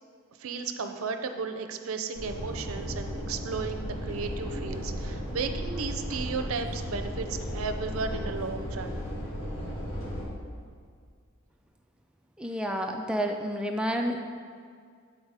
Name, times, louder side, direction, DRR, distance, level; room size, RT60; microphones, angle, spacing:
voice 1, 0.4-9.0, right 5 dB, 85° right, 7 dB, 0.5 m, -34 dB
sound 1, 2.2-10.3, equal, 70° left, 1.6 m, -35 dB
voice 2, 12.4-14.2, equal, 5° right, 3 dB, 0.3 m, -30 dB
7.9 x 3.9 x 4.8 m, 2.1 s
head